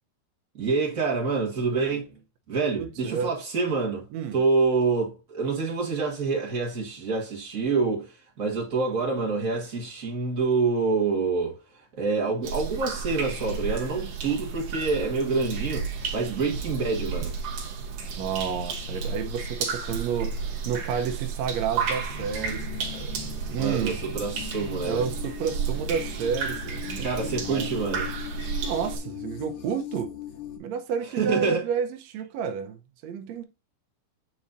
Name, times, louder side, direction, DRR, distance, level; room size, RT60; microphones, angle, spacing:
voice 1, 0.5-2.1 2.5-4.0 4.3-8.1 8.4-11.6 12.0-17.3 23.6-25.0 27.0-28.1 31.2-31.6, right 4 dB, 45° right, 1.1 m, -27 dB
voice 2, 2.8-3.3 4.1-4.4 16.2-16.4 18.2-24.0 24.8-28.0 28.6-30.1 30.6-33.4, right 7 dB, 85° right, 1.5 m, -31 dB
sound 1, 12.4-29.0, right 5 dB, 65° right, 1.6 m, -32 dB
sound 2, 22.1-30.6, left 9 dB, 80° left, 3.0 m, -40 dB
8.5 x 4.2 x 2.6 m
omnidirectional pair, 4.1 m